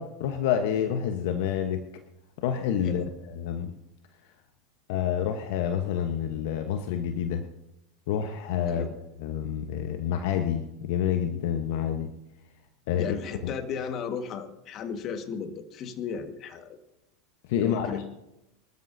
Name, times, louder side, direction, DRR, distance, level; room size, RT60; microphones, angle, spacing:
voice 1, 0.0-1.8 2.4-3.7 4.9-7.4 8.1-8.9 9.2-12.1 12.9-13.1 13.4-13.5 17.5-18.0, left 9 dB, 65° left, 7 dB, 1.1 m, -28 dB
voice 2, 13.0-16.8 17.6-18.1, left 6 dB, 45° left, 8 dB, 1.7 m, -35 dB
24.5 x 13.0 x 2.8 m, 0.91 s
hypercardioid pair, 90°, 0 cm